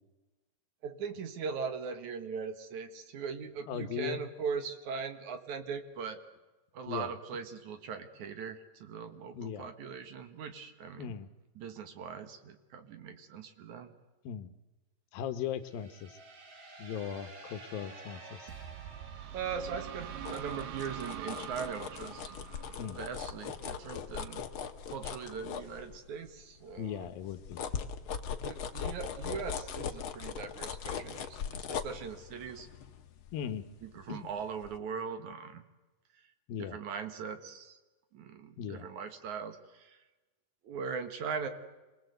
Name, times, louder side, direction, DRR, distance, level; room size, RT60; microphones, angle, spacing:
voice 1, 0.8-6.2 6.7-11.1 11.6-13.9 19.3-22.3 22.9-24.4 24.9-27.1 28.4-32.7 33.8-35.6 36.1-36.2 36.6-37.8 38.1-40.0 40.6-41.5, right 6 dB, 65° right, 8 dB, 2.7 m, -40 dB
voice 2, 3.7-4.2 6.9-7.1 9.3-9.7 11.0-11.3 14.2-14.5 15.1-16.2 16.8-18.5 22.8-23.0 26.8-27.6 33.3-33.6 34.1-34.3 36.5-36.8 38.6-38.9, left 8 dB, 85° left, 10 dB, 2.9 m, -38 dB
sound 1, 15.6-20.3, right 2 dB, 40° right, 2.9 m, -52 dB
sound 2, 18.5-24.1, right 9 dB, 85° right, 3.1 m, -44 dB
sound 3, 20.0-26.3 26.7-34.3 34.6-34.8, left 7 dB, 60° left, 1.4 m, -40 dB
26.5 x 19.5 x 8.0 m, 1.1 s
omnidirectional pair, 4.0 m